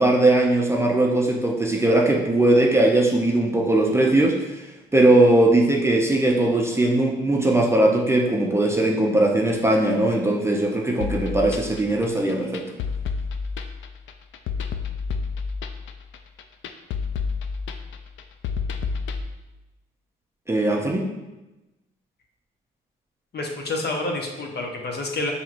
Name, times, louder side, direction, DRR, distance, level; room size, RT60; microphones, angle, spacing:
voice 1, 0.0-4.7 4.9-12.6 20.5-21.1, right 2 dB, 15° right, -1 dB, 0.5 m, -19 dB
sound 1, 11.0-19.2, left 5 dB, 70° left, 0.4 m, -29 dB
voice 2, 23.3-25.3, left 2 dB, 55° left, 1 dB, 0.9 m, -28 dB
5.6 x 2.9 x 2.5 m, 1.0 s
cardioid pair, 90°, 21 cm